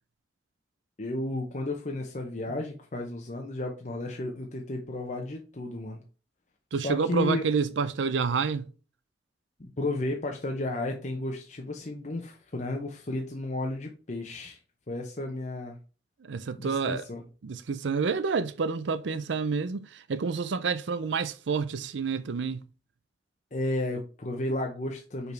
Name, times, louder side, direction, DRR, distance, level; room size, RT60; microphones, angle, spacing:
voice 1, 1.0-6.0 6.7-7.4 9.6-14.6 14.9-15.8 16.6-17.2 23.5-25.3, left 2 dB, 40° left, 0.8 m, -33 dB
voice 2, 6.7-8.7 16.2-17.0 17.4-22.6, right 5 dB, 85° right, 0.5 m, -28 dB
5.3 x 4.7 x 4.5 m
head